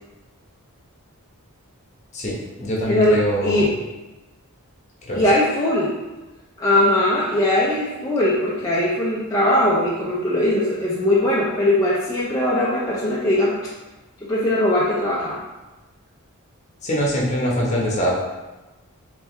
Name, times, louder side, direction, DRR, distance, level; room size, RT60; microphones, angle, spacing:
voice 1, 2.1-3.7 5.0-5.2 16.8-18.2, equal, 30° left, -4 dB, 0.9 m, -23 dB
voice 2, 2.9-3.7 5.1-5.9 6.6-13.6 14.2-15.4, left 1 dB, 15° left, -7 dB, 0.4 m, -20 dB
3.4 x 3.2 x 3.1 m, 1.1 s
head